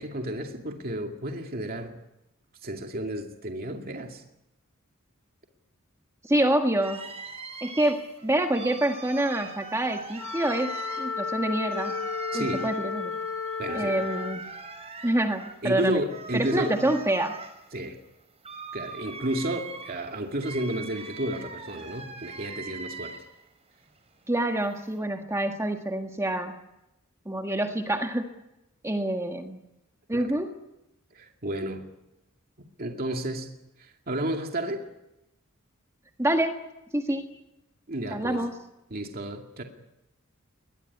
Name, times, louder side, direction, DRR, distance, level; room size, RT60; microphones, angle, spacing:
voice 1, 0.0-2.0 2.6-4.2 12.3-12.7 13.6-14.0 15.6-16.9 17.7-18.0 18.7-23.1 30.1-30.3 31.1-31.9 32.8-33.5 33.8-34.9 37.9-38.4 38.9-39.6, right 1 dB, 45° right, 3 dB, 2.4 m, -32 dB
voice 2, 6.2-7.0 7.6-11.9 12.3-13.1 13.7-14.5 15.0-16.0 16.3-17.4 24.3-26.5 27.3-28.3 28.8-29.6 30.1-30.5 36.2-36.6 36.9-37.3 38.1-38.6, right 1 dB, 15° right, 4 dB, 1.6 m, -27 dB
sound 1, 6.8-23.5 23.8-25.0, right 4 dB, 30° right, 4.0 m, -42 dB
Wind instrument woodwind instrument, 10.1-14.4, left 5 dB, 75° left, 1.1 m, -32 dB
21.5 x 20.5 x 9.8 m, 0.92 s
head